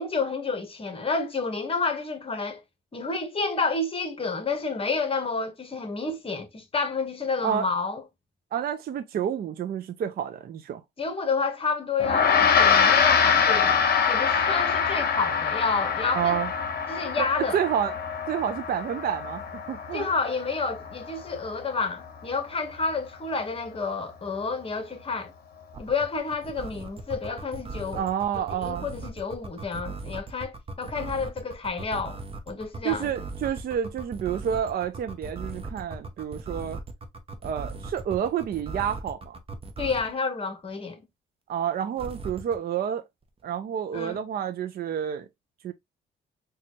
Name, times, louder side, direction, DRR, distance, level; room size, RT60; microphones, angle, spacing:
voice 1, 0.0-2.6 2.9-8.0 11.0-16.4 16.9-17.6 19.9-25.3 25.8-28.0 28.6-32.2 32.5-33.1 39.8-41.0 43.9-44.2, left 4 dB, 30° left, 1.0 m, -30 dB
voice 2, 8.5-10.8 16.1-16.5 17.2-18.0 18.3-20.1 27.9-28.9 32.8-36.8 37.4-39.4 41.5-43.0 43.4-45.3 45.6-45.7, right 9 dB, 50° right, 0.5 m, -29 dB
Gong, 12.0-21.6, left 6 dB, 50° left, 0.8 m, -24 dB
sound 1, 25.7-40.1 42.0-42.6, right 3 dB, 30° right, 0.8 m, -38 dB
3.9 x 2.3 x 2.9 m
cardioid pair, 90°, 20 cm